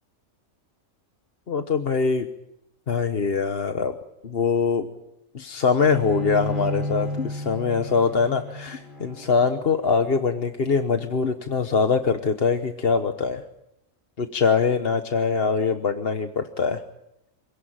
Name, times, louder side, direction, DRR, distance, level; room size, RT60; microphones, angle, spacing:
voice 1, 1.5-2.3 2.9-4.0 4.2-4.9 5.3-13.4 14.2-16.8, left 5 dB, 45° left, 7 dB, 1.3 m, -23 dB
Bowed string instrument, 5.7-11.1, left 1 dB, 45° right, 4.3 m, -33 dB
26.5 x 18.0 x 8.9 m, 0.87 s
omnidirectional pair, 1.4 m